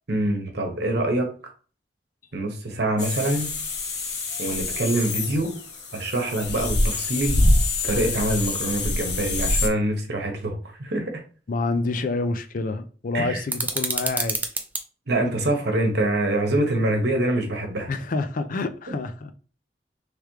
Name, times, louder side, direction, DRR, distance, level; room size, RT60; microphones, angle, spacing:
voice 1, 0.1-1.3 2.3-3.5 4.4-5.5 5.9-7.4 7.8-11.2 13.1-13.4 15.1-17.9 18.9-19.0, right 1 dB, 70° right, 1.0 m, -25 dB
sound 1, 3.0-9.7, left 2 dB, 75° left, 0.9 m, -25 dB
voice 2, 11.5-14.4 17.9-19.3, left 3 dB, 50° left, 0.4 m, -27 dB
sound 2, 13.5-14.8, right 3 dB, 10° right, 0.5 m, -27 dB
3.5 x 3.3 x 3.1 m
head